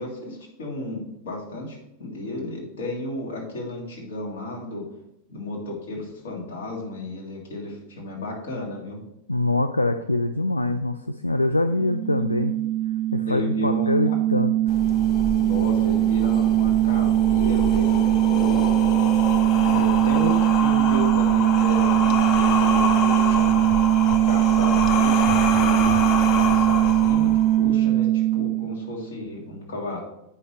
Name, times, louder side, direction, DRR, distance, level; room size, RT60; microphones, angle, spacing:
voice 1, 0.0-4.8 5.3-9.0 13.3-14.2 15.4-18.8 19.7-23.6 24.2-28.1 28.3-30.0, left 2 dB, 60° left, -2 dB, 2.3 m, -33 dB
voice 2, 9.3-12.5 13.1-14.8 19.6-19.8, left 2 dB, 85° left, 8 dB, 0.3 m, -24 dB
sound 1, 11.7-29.2, right 13 dB, 20° right, 1.2 m, -20 dB
sound 2, 14.7-27.7, left 5 dB, 35° left, 0.7 m, -28 dB
8.4 x 5.5 x 3.3 m, 0.84 s
figure-of-eight pair, 90°, 0 cm